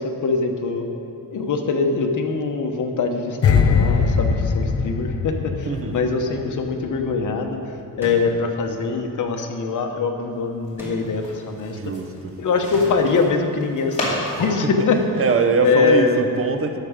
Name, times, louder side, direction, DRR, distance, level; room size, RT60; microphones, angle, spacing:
voice 1, 0.0-7.6 8.0-11.8 12.4-15.0 15.6-16.3, left 4 dB, 60° left, 4 dB, 1.0 m, -23 dB
sound 1, 3.4-6.6 6.9-7.1, left 5 dB, 45° left, 0.6 m, -20 dB
voice 2, 5.6-6.0 11.7-12.3 15.2-16.8, right 4 dB, 40° right, 7 dB, 0.6 m, -22 dB
sound 2, 8.0-8.5 10.8-11.3 12.7-13.2, equal, 5° right, 2.0 m, -36 dB
sound 3, 10.3-15.9, left 1 dB, 20° left, 2.5 m, -33 dB
12.0 x 6.6 x 5.0 m, 2.6 s
wide cardioid pair, 150°, 35 cm